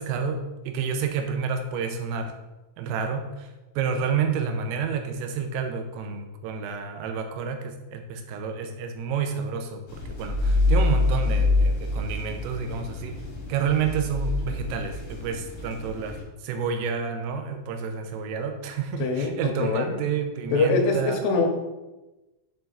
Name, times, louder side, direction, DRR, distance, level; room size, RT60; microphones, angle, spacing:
voice 1, 0.0-2.3 2.8-3.5 3.8-13.2 13.5-16.2 16.4-21.2, right 6 dB, 90° right, 5 dB, 3.3 m, -29 dB
sound 1, 9.9-16.2, left 2 dB, 55° left, 3.2 m, -26 dB
voice 2, 19.0-19.9 20.5-21.5, left 3 dB, 80° left, 3 dB, 3.2 m, -23 dB
7.7 x 4.6 x 3.9 m, 1.1 s
omnidirectional pair, 5.9 m